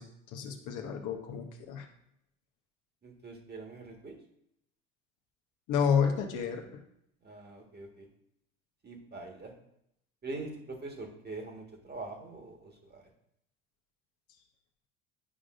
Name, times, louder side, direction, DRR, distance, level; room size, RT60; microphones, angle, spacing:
voice 1, 0.0-1.9 5.7-6.6, left 6 dB, 50° left, 3 dB, 1.0 m, -30 dB
voice 2, 3.0-4.2 7.2-8.1 8.8-9.5 10.2-13.0, right 3 dB, 25° right, 2 dB, 1.6 m, -43 dB
9.9 x 4.8 x 2.5 m, 0.76 s
hypercardioid pair, 70°, 38 cm